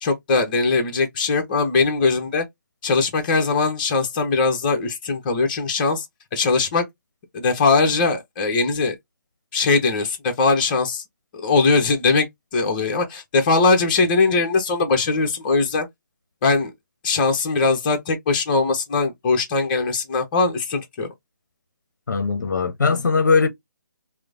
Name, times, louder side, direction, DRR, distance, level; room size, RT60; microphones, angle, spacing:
voice 1, 0.0-2.5 2.8-6.1 6.3-6.8 7.3-9.0 9.5-11.0 11.3-12.3 12.5-15.9 16.4-16.7 17.0-21.1, left 3 dB, 30° left, 0.7 m, -20 dB
voice 2, 22.1-23.5, left 4 dB, 70° left, 0.6 m, -19 dB
3.0 x 2.0 x 2.4 m
figure-of-eight pair, 150°, 10 cm